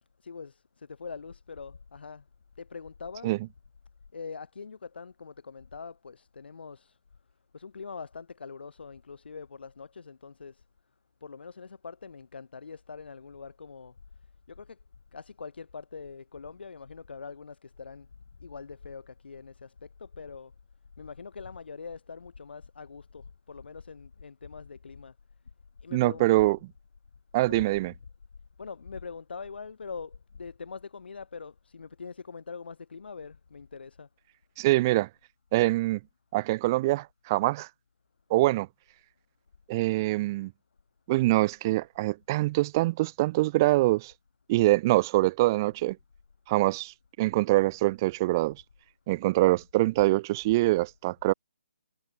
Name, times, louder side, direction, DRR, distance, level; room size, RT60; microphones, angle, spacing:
voice 1, 0.2-2.2 2.6-3.4 4.1-7.0 7.5-10.6 11.2-13.9 14.5-14.8 15.1-18.1 18.4-20.5 21.0-25.1 25.8-26.6 27.5-27.7 28.6-34.1, left 5 dB, 65° left, 3.8 m, -43 dB
voice 2, 25.9-26.6 27.3-27.9 34.6-35.1 35.5-36.0 36.3-37.7 38.3-38.7 39.7-40.5 41.1-44.1 44.5-46.0 46.5-48.6 49.1-51.3, right 19 dB, 20° right, 0.4 m, -24 dB
hypercardioid pair, 165°, 6 cm